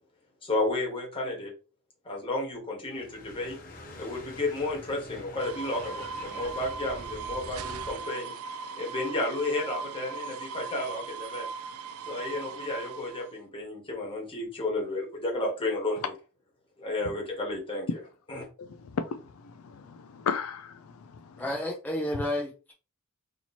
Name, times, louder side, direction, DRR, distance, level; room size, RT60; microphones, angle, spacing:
voice 1, 0.4-1.5 2.0-3.6 4.0-8.3 8.8-11.5 12.1-16.1 16.8-18.0 18.3-18.5, left 2 dB, 25° left, 1.3 m, -32 dB
sound 1, 2.8-8.0, left 1 dB, 40° left, 0.9 m, -45 dB
sound 2, 5.4-13.3, right 5 dB, 70° right, 0.3 m, -39 dB
voice 2, 18.6-21.4, left 6 dB, 75° left, 0.4 m, -35 dB
voice 3, 21.4-22.7, left 1 dB, 10° left, 0.6 m, -31 dB
2.9 x 2.9 x 4.1 m
head